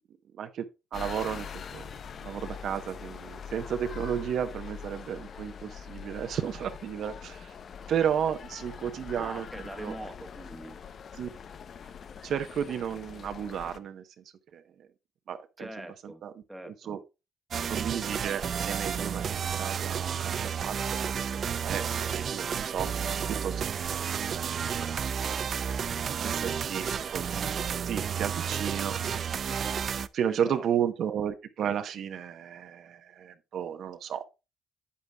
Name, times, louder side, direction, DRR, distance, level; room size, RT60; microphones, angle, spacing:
sound 1, 0.9-13.8, left 7 dB, 55° left, 0.7 m, -43 dB
voice 1, 0.9-1.9 2.2-7.5 7.9-9.5 9.8-9.9 11.1-11.3 12.2-14.0 14.5-14.6 15.3-16.3 16.7-17.0 17.7-22.9 23.3-25.8 26.2-27.3 27.8-29.2 30.1-34.2, right 9 dB, 70° right, 0.9 m, -33 dB
voice 2, 9.1-10.8 15.6-16.2 16.5-16.9 30.3-30.6, right 1 dB, 5° right, 1.3 m, -42 dB
sound 2, 17.5-30.1, right 7 dB, 55° right, 0.5 m, -31 dB
9.1 x 8.5 x 2.3 m
cardioid pair, 90°, 0 cm